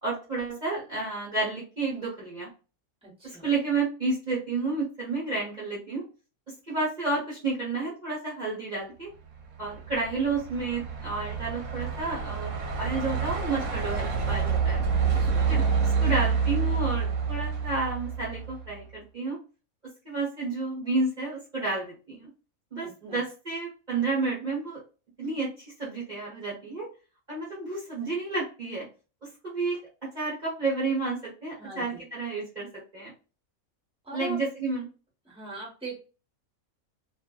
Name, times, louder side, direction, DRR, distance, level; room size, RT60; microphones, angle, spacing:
voice 1, 0.0-2.5 3.2-6.0 6.7-9.1 9.6-14.8 15.5-19.4 20.0-22.3 22.7-24.8 25.2-25.5 25.8-26.9 27.3-28.8 29.2-29.8 30.1-32.7 32.9-33.1 34.1-34.9, right 3 dB, 35° right, -7 dB, 1.1 m, -31 dB
voice 2, 3.0-3.4 15.2-15.5 22.8-23.2 31.6-32.0 34.0-34.4 35.2-36.0, right 1 dB, 5° right, -4 dB, 1.2 m, -40 dB
Truck, 9.4-18.7, right 5 dB, 85° right, 1.2 m, -28 dB
2.6 x 2.6 x 2.3 m, 0.33 s
omnidirectional pair, 1.5 m